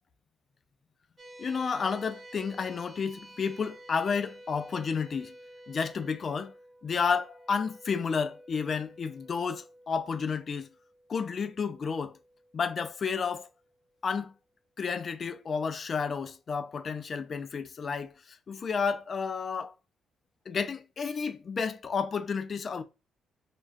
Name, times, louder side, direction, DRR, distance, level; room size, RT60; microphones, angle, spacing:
sound 1, 1.2-13.8, right 1 dB, 30° right, 0.5 m, -52 dB
voice 1, 1.4-5.3 5.7-6.5 6.8-10.7 11.1-12.1 12.5-13.5 14.0-14.3 14.8-19.7 20.5-22.8, left 5 dB, 45° left, 0.3 m, -31 dB
2.4 x 2.2 x 2.4 m
cardioid pair, 90°, 0 cm